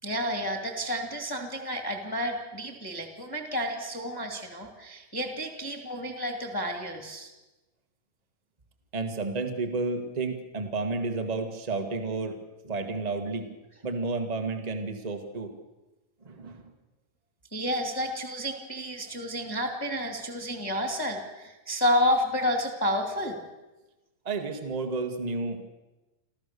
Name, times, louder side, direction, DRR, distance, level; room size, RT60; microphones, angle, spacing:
voice 1, 0.0-7.3 17.5-23.4, equal, 10° left, 4 dB, 1.6 m, -30 dB
voice 2, 8.9-12.4 12.6-13.5 13.8-15.5 16.2-16.7 24.2-25.7, right 3 dB, 45° right, 5 dB, 0.5 m, -31 dB
27.5 x 15.0 x 6.8 m, 1.1 s
omnidirectional pair, 4.0 m